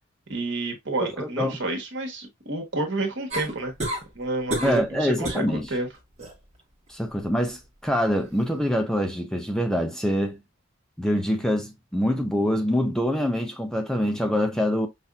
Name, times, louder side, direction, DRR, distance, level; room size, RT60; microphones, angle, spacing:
voice 1, 0.3-3.7 4.1-5.9, right 2 dB, 65° right, 1.3 m, -29 dB
voice 2, 1.0-1.6 4.6-5.7 6.9-10.4 11.0-14.9, equal, 5° left, 0.5 m, -25 dB
sound 1, 3.3-4.1 4.5-4.9 5.2-5.5 5.9-6.4 8.2-8.3, right 1 dB, 35° right, 1.3 m, -30 dB
5.7 x 2.7 x 2.3 m
head